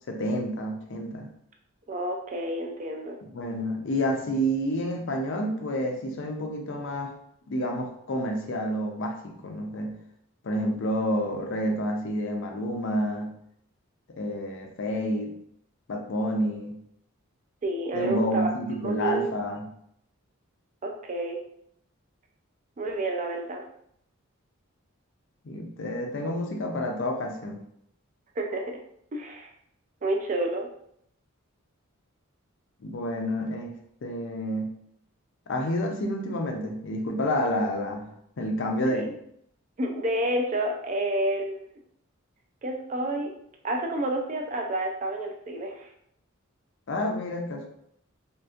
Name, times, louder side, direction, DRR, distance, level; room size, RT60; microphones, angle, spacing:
voice 1, 0.1-1.3 3.2-7.1 7.5-10.0 10.4-13.3 14.2-15.4 15.9-16.8 17.9-19.7 25.4-27.6 32.8-33.7 34.0-34.7 35.5-38.1 38.4-39.1 46.9-47.7, equal, 60° left, 3 dB, 0.4 m, -29 dB
voice 2, 1.9-3.2 17.6-18.5 18.8-19.3 20.8-21.4 22.8-23.6 28.4-28.8 29.1-29.5 30.0-30.7 38.9-39.1 39.8-41.7 42.6-43.3 43.6-45.9, right 1 dB, 35° right, 2 dB, 0.3 m, -29 dB
2.8 x 2.5 x 2.4 m, 0.71 s
head